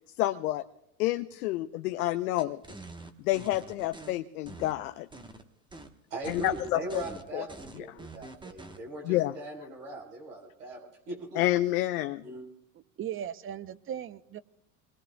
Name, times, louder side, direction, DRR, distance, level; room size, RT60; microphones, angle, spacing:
voice 1, 0.2-0.6 1.0-2.6 3.2-5.1 6.3-7.0 7.3-7.5 7.7-7.8 9.0-9.3 11.4-12.2, left 16 dB, 80° left, 7 dB, 0.7 m, -29 dB
sound 1, 2.4-4.1 4.5-5.4 5.7-5.9 6.2-8.8, right 2 dB, 10° right, 1.1 m, -46 dB
voice 2, 6.1-11.4 12.2-12.4, right 2 dB, 90° right, 0 dB, 4.0 m, -40 dB
voice 3, 13.0-14.4, right 10 dB, 30° right, 16 dB, 0.6 m, -37 dB
24.5 x 20.5 x 2.2 m, 0.78 s
hypercardioid pair, 85°, 44 cm